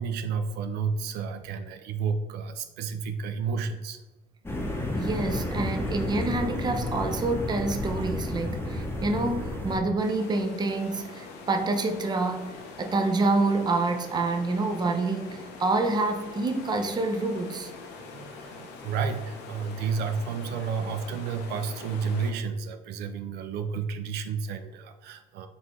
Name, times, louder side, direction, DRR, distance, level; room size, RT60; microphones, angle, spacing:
voice 1, 0.0-4.0 8.5-8.6 18.1-25.5, right 5 dB, 75° right, 0.4 m, -31 dB
sound 1, 4.4-9.8, left 1 dB, 15° left, 0.8 m, -31 dB
voice 2, 4.9-17.7, right 3 dB, 25° right, 0.5 m, -27 dB
sound 2, 10.0-22.3, left 4 dB, 85° left, 0.7 m, -44 dB
3.9 x 3.7 x 3.0 m
cardioid pair, 110°, 17 cm